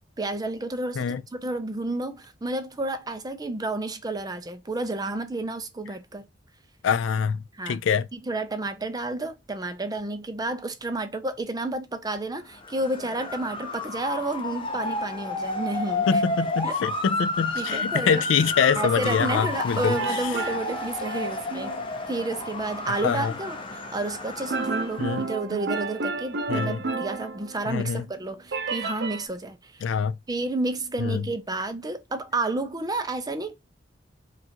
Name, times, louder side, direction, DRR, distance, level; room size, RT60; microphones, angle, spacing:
voice 1, 0.2-6.2 7.6-7.8 8.1-16.2 16.6-16.7 17.5-18.2 18.8-21.7 22.1-29.8 30.3-33.5, right 2 dB, 20° right, 0.6 m, -31 dB
voice 2, 6.8-8.1 16.1-20.0 22.9-23.3 25.0-25.2 26.5-26.8 27.7-28.0 29.8-30.2 31.0-31.3, left 6 dB, 75° left, 0.4 m, -25 dB
Motor vehicle (road) / Siren, 12.6-25.3, left 2 dB, 30° left, 0.7 m, -31 dB
sound 1, 19.9-21.8 24.5-27.8 28.5-29.3, right 3 dB, 60° right, 0.7 m, -31 dB
4.6 x 2.5 x 2.8 m
head